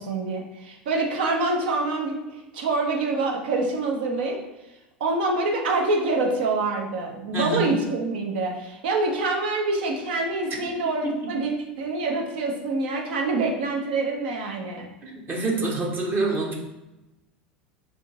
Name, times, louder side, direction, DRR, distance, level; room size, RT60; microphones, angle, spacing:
voice 1, 0.0-2.1 2.5-4.4 5.0-11.5 11.8-14.9, right 3 dB, 65° right, 1 dB, 0.7 m, -26 dB
voice 2, 7.3-7.7 11.0-11.4 15.0-16.5, right 3 dB, 35° right, -1 dB, 0.9 m, -27 dB
3.7 x 2.4 x 3.7 m, 0.98 s
figure-of-eight pair, 75°, 6 cm